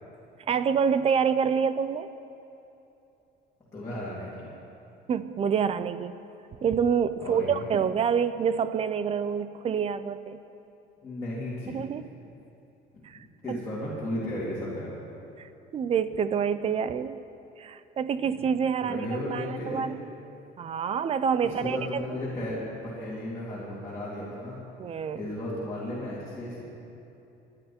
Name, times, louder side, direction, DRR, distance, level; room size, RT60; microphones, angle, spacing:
voice 1, 0.5-2.1 5.1-6.1 6.6-10.4 11.7-12.0 13.0-13.6 15.4-17.2 17.6-20.0 20.6-21.8 24.8-25.2, right 7 dB, 30° right, 13 dB, 0.5 m, -27 dB
voice 2, 3.7-4.5 7.2-7.6 11.0-11.8 13.4-15.0 18.2-18.5 18.8-19.8 21.5-24.6 25.1-26.7, left 1 dB, 15° left, -11 dB, 3.0 m, -34 dB
24.5 x 10.5 x 4.4 m, 2.9 s
cardioid pair, 155°, 19 cm